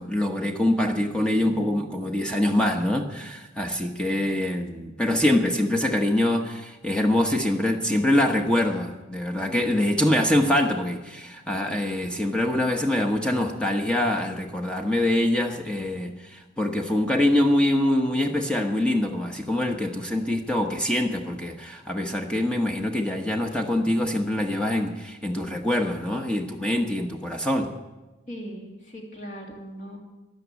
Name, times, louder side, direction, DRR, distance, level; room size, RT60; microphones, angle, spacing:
voice 1, 0.0-27.7, left 1 dB, 5° left, 3 dB, 1.0 m, -24 dB
voice 2, 28.3-30.0, equal, 40° left, 0 dB, 2.9 m, -39 dB
13.5 x 11.5 x 8.2 m, 1.1 s
head